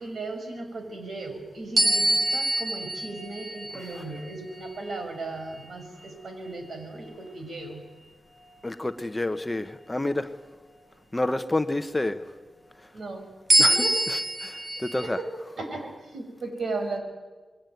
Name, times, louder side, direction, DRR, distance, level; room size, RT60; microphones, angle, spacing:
voice 1, 0.0-7.8 12.9-13.3 13.7-14.0 15.0-15.3 15.6-17.0, right 2 dB, 65° right, 5 dB, 5.8 m, -36 dB
sound 1, 1.8-6.5 7.1-7.3 13.5-15.1, right 1 dB, 50° right, 3.2 m, -26 dB
voice 2, 3.7-4.0 8.6-10.3 11.1-12.2 13.6-15.2, left 2 dB, 15° left, 9 dB, 1.0 m, -29 dB
27.5 x 21.5 x 9.4 m, 1.3 s
wide cardioid pair, 130°, 0 cm